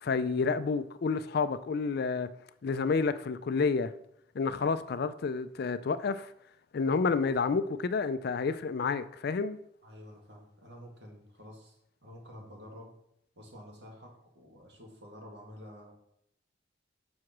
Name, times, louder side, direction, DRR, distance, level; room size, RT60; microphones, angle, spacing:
voice 1, 0.0-2.3 2.6-3.9 4.4-6.3 6.7-9.6, left 4 dB, 55° left, 0.4 m, -29 dB
voice 2, 9.8-11.8 12.0-12.9 13.4-15.9, equal, 60° right, 2.1 m, -49 dB
6.2 x 4.8 x 5.9 m
head